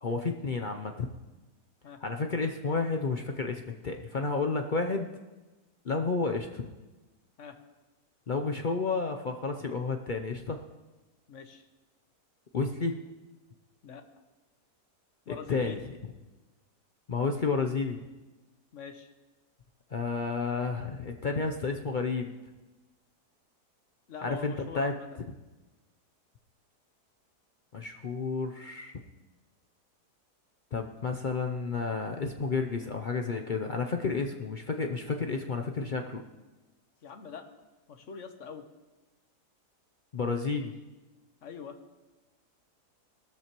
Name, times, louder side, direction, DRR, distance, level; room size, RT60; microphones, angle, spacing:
voice 1, 0.0-1.1 2.0-5.2 5.8-6.7 8.3-10.6 12.5-13.0 15.3-15.8 17.1-18.0 19.9-22.3 24.2-24.9 27.7-29.0 30.7-36.2 40.1-40.7, left 4 dB, 75° left, 4 dB, 0.4 m, -31 dB
voice 2, 11.3-11.6 13.8-14.0 15.3-15.8 18.7-19.1 24.1-25.1 37.0-37.5 37.9-38.6 41.4-41.8, left 5 dB, 50° left, 7 dB, 1.2 m, -43 dB
18.5 x 13.0 x 3.0 m, 1.2 s
omnidirectional pair, 1.8 m